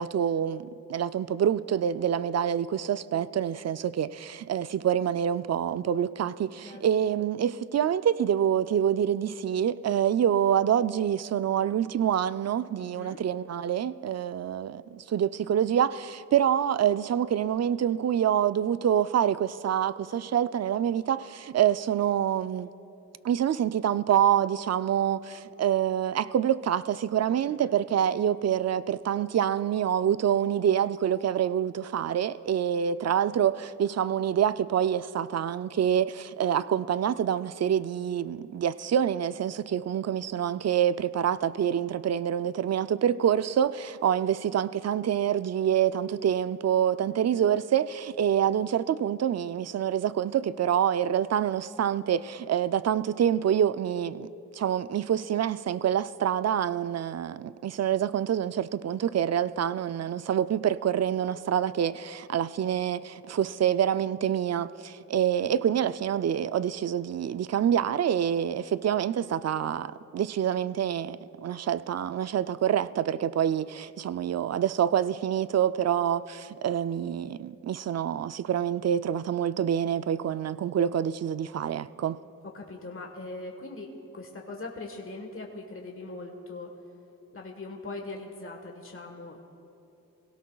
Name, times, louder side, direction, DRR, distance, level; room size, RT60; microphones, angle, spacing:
voice 1, 0.0-22.7 23.2-82.2, right 9 dB, 50° right, 0.4 m, -26 dB
voice 2, 12.9-13.2 27.3-27.7 65.5-65.6 82.5-83.9 84.1-86.7 87.3-89.4, left 2 dB, 40° left, 1.4 m, -41 dB
22.5 x 17.0 x 2.3 m
cardioid pair, 55°, 35 cm